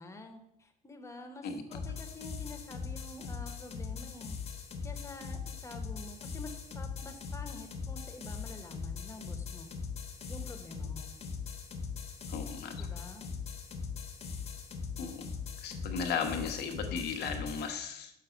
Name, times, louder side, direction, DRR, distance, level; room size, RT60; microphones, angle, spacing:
voice 1, 0.0-4.4 4.8-9.7 10.3-11.1 12.7-13.3, left 2 dB, 15° left, 4 dB, 1.1 m, -48 dB
sound 1, 1.7-17.7, left 5 dB, 40° left, 1.1 m, -41 dB
voice 2, 12.3-12.9 15.0-15.3 15.6-18.1, left 6 dB, 75° left, 5 dB, 1.1 m, -36 dB
6.1 x 6.1 x 5.1 m, 0.82 s
cardioid pair, 110°, 17 cm